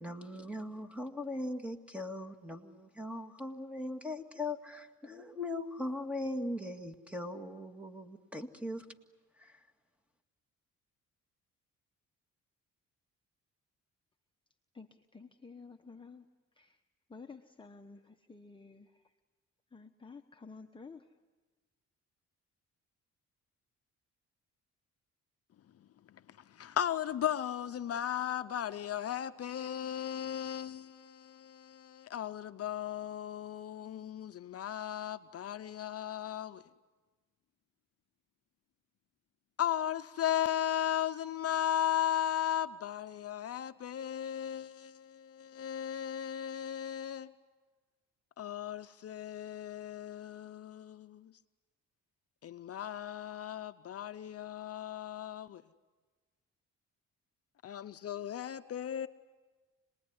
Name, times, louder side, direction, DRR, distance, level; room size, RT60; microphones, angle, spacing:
voice 1, 0.0-8.9 9.4-9.6, left 1 dB, 5° right, 2.0 m, -39 dB
voice 2, 14.7-16.3 16.6-16.8 17.1-19.1 19.7-21.1, left 4 dB, 15° left, 1.1 m, -52 dB
voice 3, 26.5-36.6 39.6-47.3 48.4-51.3 52.4-55.6 57.6-59.1, left 10 dB, 50° left, 0.7 m, -36 dB
27.0 x 20.5 x 9.7 m
cardioid pair, 90°, 30 cm